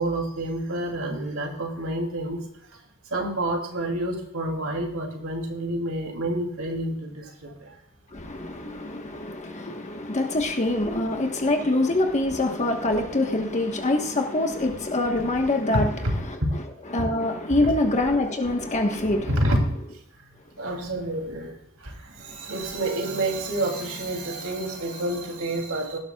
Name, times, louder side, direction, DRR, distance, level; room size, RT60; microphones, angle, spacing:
voice 1, 0.0-2.4 3.1-7.7 15.7-16.1 17.0-17.1 19.3-19.8 20.6-21.5 21.8-26.0, right 1 dB, 70° right, 2 dB, 2.9 m, -28 dB
voice 2, 8.1-15.9 16.3-16.4 16.9-19.3, left 2 dB, 35° left, 3 dB, 1.2 m, -25 dB
17.5 x 12.0 x 2.4 m, 0.68 s
head